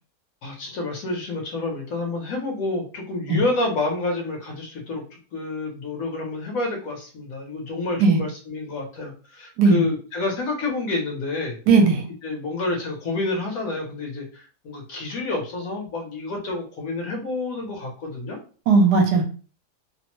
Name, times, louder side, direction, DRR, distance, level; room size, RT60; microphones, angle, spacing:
voice 1, 0.4-11.6 12.2-18.4, left 2 dB, 65° left, 1 dB, 1.1 m, -29 dB
voice 2, 11.7-12.0 18.7-19.2, right 4 dB, 75° right, 4 dB, 1.1 m, -16 dB
2.9 x 2.0 x 3.0 m, 0.39 s
omnidirectional pair, 1.8 m